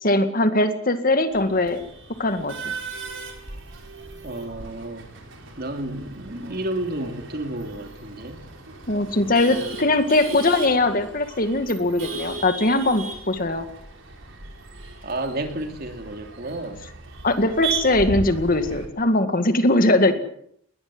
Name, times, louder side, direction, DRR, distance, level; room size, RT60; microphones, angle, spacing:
voice 1, 0.0-1.8 2.2-2.7 8.9-13.7 17.2-20.1, left 2 dB, 45° left, 8 dB, 2.1 m, -21 dB
Male speech man speaking / Laughter / Chatter, 1.3-18.9, right 4 dB, 65° right, 5.1 m, -36 dB
voice 2, 4.2-5.1 5.6-8.4 9.5-9.6 15.0-16.8 20.1-20.2, right 1 dB, 50° right, 5 dB, 3.2 m, -31 dB
20.5 x 20.0 x 7.9 m, 0.68 s
head